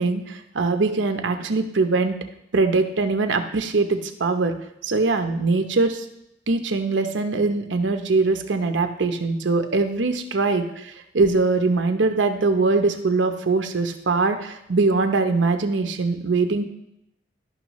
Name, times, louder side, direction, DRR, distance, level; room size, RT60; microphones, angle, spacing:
voice 1, 0.0-2.2 2.5-4.5 4.8-6.0 6.5-16.6, right 3 dB, 90° right, 7 dB, 0.7 m, -22 dB
12.0 x 5.5 x 3.1 m, 0.80 s
head